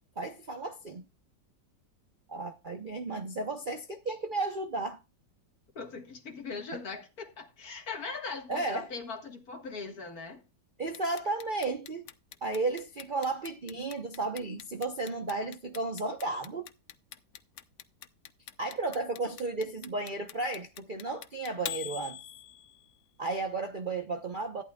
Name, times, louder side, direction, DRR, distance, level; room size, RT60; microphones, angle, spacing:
voice 1, 0.2-1.1 2.3-5.0 8.5-8.9 10.8-12.1 12.4-16.7 18.6-22.2 23.2-24.6, right 3 dB, 40° right, 0.7 m, -33 dB
voice 2, 5.8-10.4, left 4 dB, 50° left, 2.0 m, -40 dB
Clock, 10.9-22.9, left 10 dB, 75° left, 0.6 m, -43 dB
14.0 x 11.5 x 2.3 m
omnidirectional pair, 2.0 m